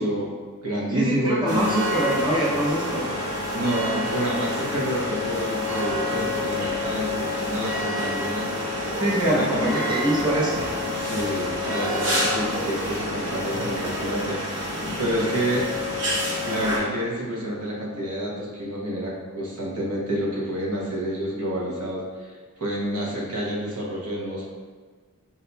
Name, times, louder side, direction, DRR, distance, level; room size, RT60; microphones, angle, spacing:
voice 1, 0.0-1.7 3.5-8.9 9.2-9.7 10.9-15.7 16.4-22.3 22.6-24.4, equal, 85° right, -4 dB, 1.1 m, -29 dB
voice 2, 0.9-3.1 9.0-10.6, right 1 dB, 20° right, -6 dB, 0.6 m, -24 dB
sound 1, 1.5-16.8, left 1 dB, 65° right, 1.1 m, -28 dB
4.5 x 4.0 x 2.3 m, 1.5 s
head